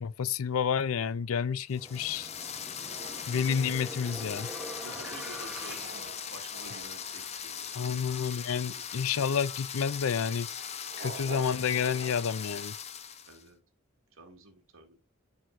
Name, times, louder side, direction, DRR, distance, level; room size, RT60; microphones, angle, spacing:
voice 1, 0.0-2.3 3.3-4.5 7.7-10.5 11.0-12.8, left 7 dB, 75° left, 0.5 m, -30 dB
sound 1, 1.7-13.4, left 8 dB, 30° left, 0.6 m, -40 dB
sound 2, 1.7-6.9, equal, 5° right, 1.0 m, -45 dB
sound 3, 2.7-8.5 10.8-12.5, right 4 dB, 45° right, 0.9 m, -49 dB
voice 2, 4.8-8.0 13.2-13.6 14.1-15.0, right 3 dB, 65° right, 2.0 m, -49 dB
13.0 x 4.4 x 2.6 m
head